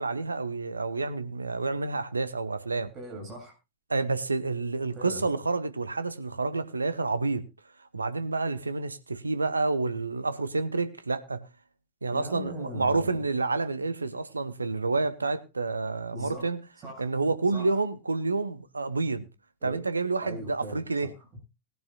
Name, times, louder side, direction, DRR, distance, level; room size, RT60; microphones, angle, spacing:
voice 1, 0.0-2.9 3.9-7.4 7.9-11.4 12.0-16.6 17.0-19.3 19.6-21.1, right 3 dB, 80° right, 1.1 m, -29 dB
voice 2, 2.9-3.5 4.9-5.3 12.1-13.3 16.1-16.5 16.8-17.0 17.5-17.8 19.6-19.8 20.2-21.4, right 1 dB, 30° right, 7.5 m, -40 dB
20.0 x 11.0 x 2.3 m
figure-of-eight pair, 90°, 0 cm